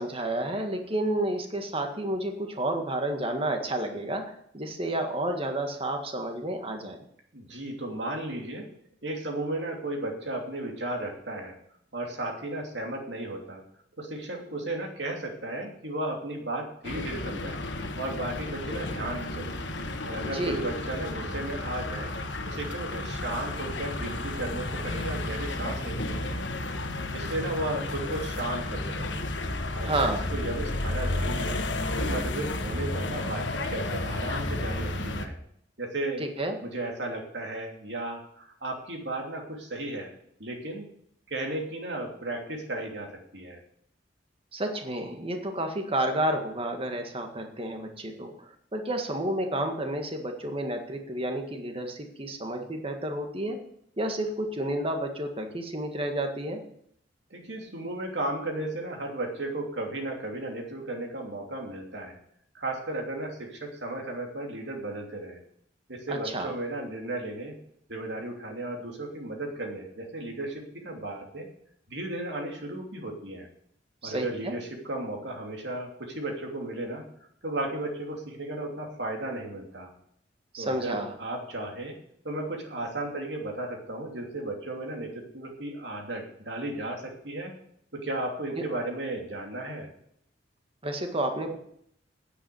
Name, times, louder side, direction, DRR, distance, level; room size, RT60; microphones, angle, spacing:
voice 1, 0.0-4.2 4.5-7.0 20.2-20.6 29.8-30.3 36.2-36.6 44.5-53.6 54.0-56.6 66.1-66.5 74.0-74.6 80.5-81.1 88.6-88.7 90.8-91.6, right 1 dB, 30° right, 4 dB, 1.8 m, -30 dB
voice 2, 7.3-8.7 9.0-11.6 11.9-13.6 14.0-17.6 18.0-19.6 20.0-22.1 22.5-26.4 27.1-29.1 29.7-31.6 32.0-35.4 35.8-36.2 36.6-40.1 40.4-40.9 41.3-43.6 57.3-62.2 62.5-65.4 65.9-67.6 67.9-71.5 71.9-73.5 74.0-77.1 77.4-79.9 80.6-81.9 82.2-87.5 87.9-89.9, right 1 dB, 70° right, 1 dB, 3.0 m, -34 dB
sound 1, 16.8-35.3, left 2 dB, 75° left, 1.4 m, -32 dB
9.9 x 8.3 x 7.8 m, 0.69 s
head